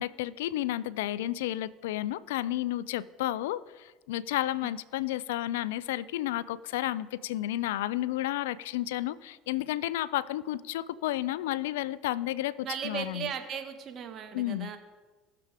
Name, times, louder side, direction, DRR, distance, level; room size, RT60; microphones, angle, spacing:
voice 1, 0.0-13.3 14.3-14.7, left 14 dB, 85° left, 19 dB, 0.3 m, -32 dB
voice 2, 12.6-14.8, right 7 dB, 50° right, 7 dB, 1.4 m, -37 dB
18.5 x 6.7 x 3.5 m, 1.3 s
supercardioid pair, 80°, 0 cm